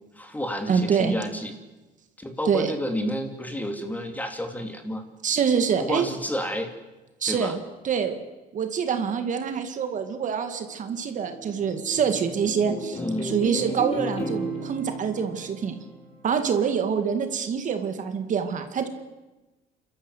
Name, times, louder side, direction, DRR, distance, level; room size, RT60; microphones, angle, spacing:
voice 1, 0.2-1.5 2.2-5.0 5.8-6.7 7.3-7.6 13.0-13.3, equal, 10° left, 6 dB, 2.9 m, -30 dB
voice 2, 0.7-1.2 2.5-2.7 5.2-6.1 7.2-8.2 8.5-15.8 16.2-18.9, right 7 dB, 50° right, 7 dB, 2.1 m, -26 dB
sound 1, 10.7-16.3, equal, 35° left, 5.4 m, -35 dB
28.5 x 13.5 x 8.1 m, 1.1 s
cardioid pair, 110°, 17 cm